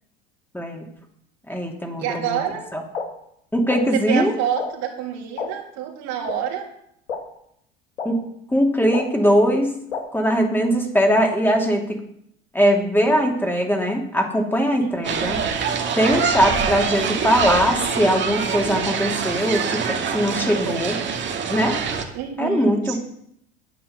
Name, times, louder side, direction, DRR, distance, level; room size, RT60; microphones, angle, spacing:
voice 1, 0.5-0.9 1.5-2.4 2.7-2.8 3.5-4.3 8.0-8.2 8.5-9.8 10.1-12.0 12.5-15.4 15.9-21.0 21.5-21.8 22.4-23.0, equal, 5° left, 2 dB, 2.7 m, -20 dB
voice 2, 2.0-2.7 3.9-6.6 14.8-15.3 22.1-23.0, right 9 dB, 55° right, 0 dB, 3.3 m, -27 dB
sound 1, 2.9-3.0 3.7-3.8 4.6-4.7 5.4-5.5 6.3-6.4 7.1-7.2 8.0-8.1 8.9-9.0 9.9-10.0, left 6 dB, 80° left, 2.2 m, -27 dB
sound 2, 15.0-22.0, right 6 dB, 35° right, 2.2 m, -25 dB
10.0 x 9.3 x 6.7 m, 0.71 s
hypercardioid pair, 70°, 31 cm